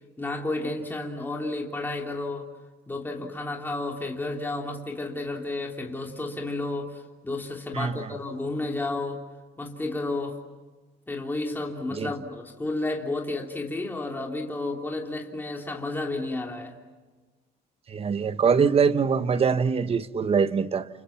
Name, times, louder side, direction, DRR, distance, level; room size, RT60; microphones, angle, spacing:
voice 1, 0.2-2.5 2.9-9.2 9.6-10.4 11.1-16.7, left 2 dB, 10° left, 0 dB, 3.3 m, -32 dB
voice 2, 7.7-8.1 11.9-12.1 17.9-20.9, right 6 dB, 35° right, 12 dB, 1.3 m, -23 dB
30.0 x 29.5 x 6.0 m, 1.3 s
cardioid pair, 110°, 17 cm